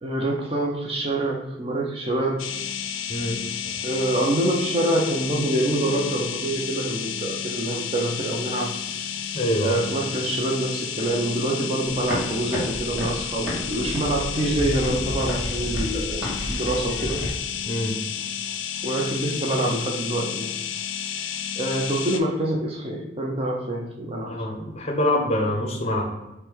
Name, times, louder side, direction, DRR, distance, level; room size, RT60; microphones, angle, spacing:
voice 1, 0.0-2.5 3.8-8.7 9.2-17.2 18.8-20.5 21.1-24.4, right 1 dB, 30° right, -1 dB, 0.6 m, -26 dB
sound 1, 2.4-22.2, left 8 dB, 80° left, 0.4 m, -31 dB
voice 2, 3.1-3.5 9.3-9.8 17.7-18.0 24.2-26.0, left 1 dB, 30° left, 2 dB, 0.6 m, -25 dB
sound 2, 11.9-17.3, equal, 5° right, 1.4 m, -31 dB
5.1 x 2.2 x 4.5 m, 1.0 s
head